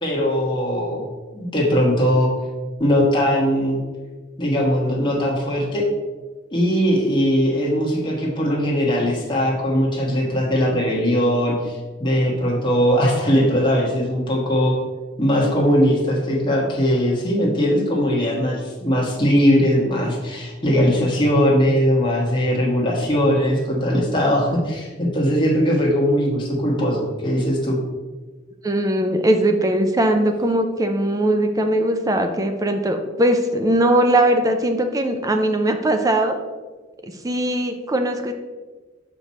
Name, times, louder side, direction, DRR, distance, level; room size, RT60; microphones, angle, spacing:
voice 1, 0.0-1.0 1.3-2.3 2.8-3.8 4.4-5.9 6.5-14.7 15.2-27.8, equal, 25° left, -3 dB, 1.4 m, -20 dB
voice 2, 28.6-36.4 37.0-38.3, right 1 dB, 20° right, 6 dB, 0.4 m, -20 dB
6.0 x 5.0 x 4.2 m, 1.3 s
head